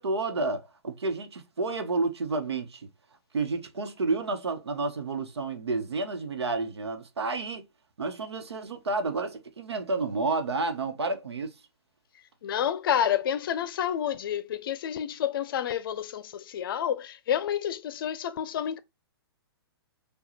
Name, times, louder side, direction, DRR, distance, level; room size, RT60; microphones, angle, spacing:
voice 1, 0.0-2.9 3.3-7.6 8.0-11.6, right 3 dB, 85° right, 1.0 m, -30 dB
voice 2, 12.4-18.8, left 9 dB, 60° left, 0.5 m, -29 dB
4.8 x 2.3 x 3.1 m
hypercardioid pair, 135°, 13 cm